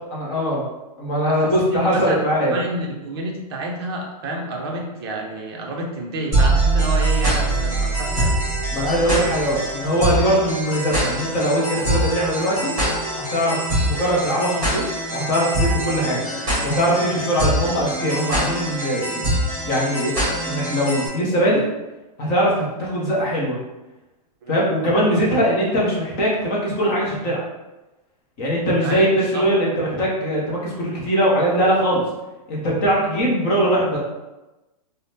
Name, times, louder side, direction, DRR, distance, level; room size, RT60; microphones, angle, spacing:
voice 1, 0.1-0.6 1.0-2.6 8.7-12.7 13.3-16.3 16.6-19.4 19.6-21.7 22.2-23.6 24.5-27.4 28.4-32.0 32.5-34.0, equal, 20° left, -5 dB, 0.6 m, -21 dB
voice 2, 1.3-8.4 24.4-24.5 28.8-29.1 29.3-29.4, right 1 dB, 40° right, -1 dB, 0.5 m, -29 dB
sound 1, 6.3-21.1, right 1 dB, 15° right, 1.3 m, -23 dB
3.4 x 2.0 x 2.7 m, 1.1 s
hypercardioid pair, 175°, 21 cm